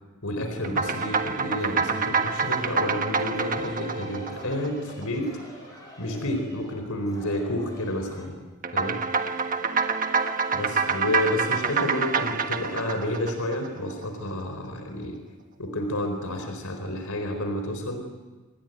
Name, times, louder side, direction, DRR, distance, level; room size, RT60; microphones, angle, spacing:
voice 1, 0.2-5.3 6.0-8.3 8.7-9.0 10.5-15.2 15.6-18.0, left 1 dB, 85° left, 6 dB, 4.4 m, -30 dB
sound 1, 0.6-5.3 8.6-14.0, right 5 dB, 40° right, 1.5 m, -27 dB
sound 2, 1.5-8.3, equal, 15° left, 7.3 m, -49 dB
28.5 x 21.0 x 9.2 m, 1.3 s
head